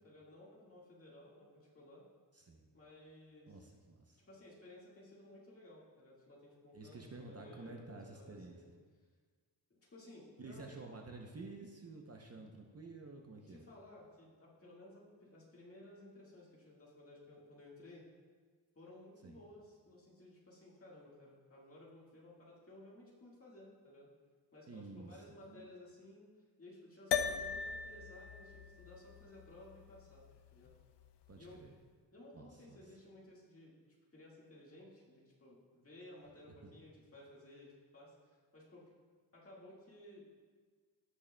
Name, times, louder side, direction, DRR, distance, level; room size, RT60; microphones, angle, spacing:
voice 1, 0.0-2.0 2.7-3.6 4.2-7.9 8.1-8.7 9.7-10.7 13.5-18.1 18.8-24.1 24.5-26.3 26.6-30.3 30.5-30.8 31.3-31.6 32.1-33.8 34.1-38.9 39.3-40.2, left 1 dB, 35° left, -5 dB, 1.8 m, -57 dB
voice 2, 2.3-2.7 3.5-4.2 6.7-8.6 10.4-13.7 19.2-19.4 24.7-25.2 25.5-25.7 31.3-31.7 32.3-32.8, right 3 dB, 35° right, 1 dB, 0.7 m, -51 dB
sound 1, 27.1-31.7, left 7 dB, 85° left, 0.5 m, -41 dB
16.5 x 6.2 x 2.2 m, 1.5 s
wide cardioid pair, 175°, 41 cm